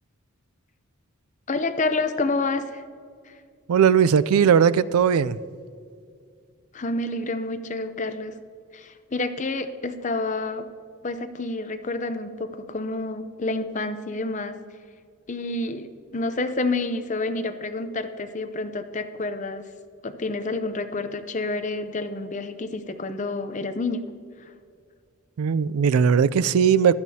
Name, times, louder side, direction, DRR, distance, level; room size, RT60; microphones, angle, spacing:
voice 1, 1.5-2.8 3.3-3.4 6.7-8.4 8.7-10.7 11.0-14.6 15.3-19.7 20.0-24.0 24.4-24.5, left 2 dB, 35° left, 0.6 m, -29 dB
voice 2, 3.7-5.4 25.4-27.0, right 7 dB, 80° right, 0.4 m, -18 dB
15.5 x 12.0 x 2.8 m
head